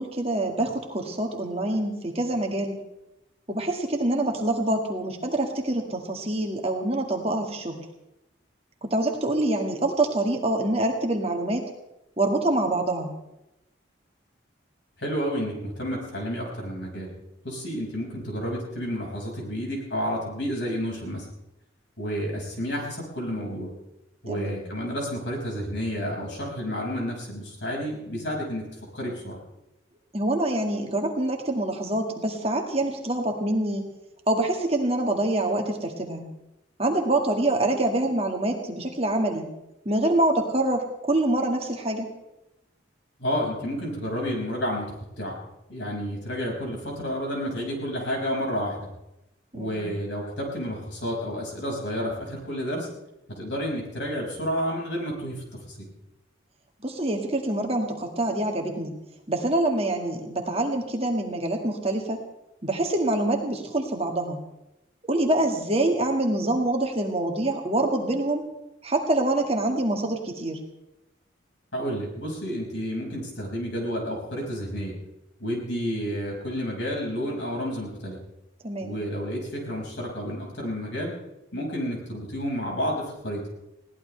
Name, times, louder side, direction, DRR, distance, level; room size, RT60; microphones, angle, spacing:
voice 1, 0.0-2.8 3.5-7.9 8.8-11.6 12.2-13.1 24.3-24.6 30.1-33.9 34.3-36.3 36.8-39.5 39.9-42.1 49.5-49.9 56.8-58.9 59.3-62.2 62.6-64.4 65.1-68.5 68.8-70.6 78.6-79.0, right 1 dB, 30° right, 2 dB, 1.9 m, -25 dB
voice 2, 15.0-17.1 17.4-21.3 22.0-23.7 24.2-28.7 28.9-29.4 43.2-45.4 45.7-48.9 49.5-52.9 53.3-55.9 71.7-75.0 75.4-78.2 78.8-81.1 81.5-83.5, equal, 65° left, -1 dB, 5.6 m, -30 dB
21.5 x 17.5 x 3.3 m, 0.90 s
head